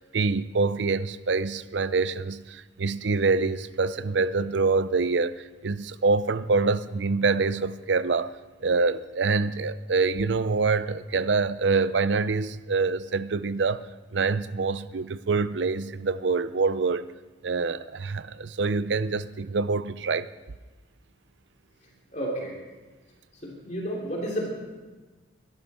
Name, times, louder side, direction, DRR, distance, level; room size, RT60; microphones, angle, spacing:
voice 1, 0.0-8.3 8.6-13.9 14.1-17.1 17.4-20.3, right 4 dB, 75° right, 0.6 m, -25 dB
voice 2, 22.1-22.6 23.4-24.5, equal, 40° left, 3.2 m, -31 dB
23.5 x 12.0 x 4.4 m
head